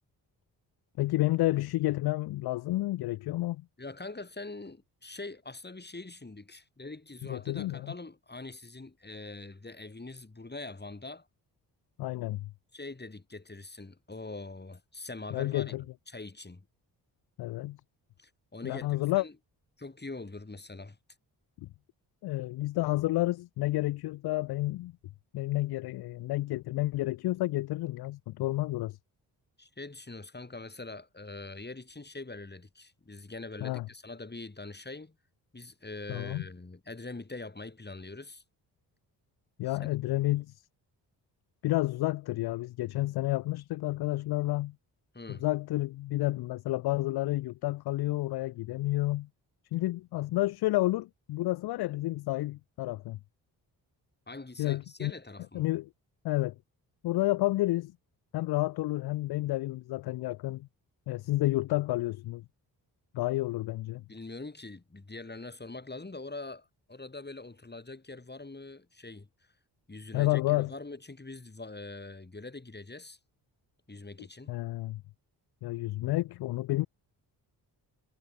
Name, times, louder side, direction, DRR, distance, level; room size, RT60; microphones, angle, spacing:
voice 1, 1.0-3.6 7.3-7.9 12.0-12.5 15.3-15.8 17.4-17.8 18.6-19.2 21.6-21.7 22.2-24.9 25.3-29.0 33.6-33.9 36.1-36.4 39.6-40.6 41.6-44.7 45.3-49.3 49.7-53.2 54.6-55.1 55.5-55.9 56.2-56.6 57.0-57.9 58.3-60.7 61.1-62.4 63.1-64.0 70.1-70.7 74.5-75.0 75.6-76.9, left 17 dB, 55° left, 0.5 m, -30 dB
voice 2, 3.8-11.3 12.7-15.7 16.1-16.7 18.2-19.3 19.8-21.0 29.6-35.2 35.5-38.4 39.7-39.9 40.2-40.3 45.1-45.5 54.3-55.6 64.1-69.3 69.9-73.2 73.9-74.6, left 3 dB, 20° left, 3.6 m, -43 dB
hypercardioid pair, 45°, 47 cm